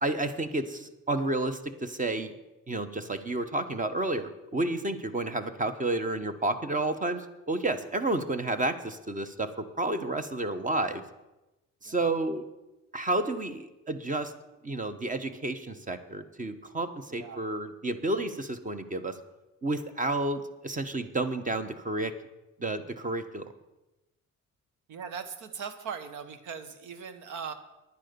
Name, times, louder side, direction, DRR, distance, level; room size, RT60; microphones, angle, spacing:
voice 1, 0.0-2.3 2.7-11.0 11.8-12.4 12.9-14.3 14.6-19.2 19.6-22.1 22.6-23.4, right 2 dB, 25° right, 10 dB, 1.2 m, -31 dB
voice 2, 11.8-12.2 17.1-17.5 24.9-27.5, right 6 dB, 85° right, 11 dB, 1.3 m, -40 dB
10.0 x 9.9 x 7.0 m, 1.0 s
cardioid pair, 90°, 30 cm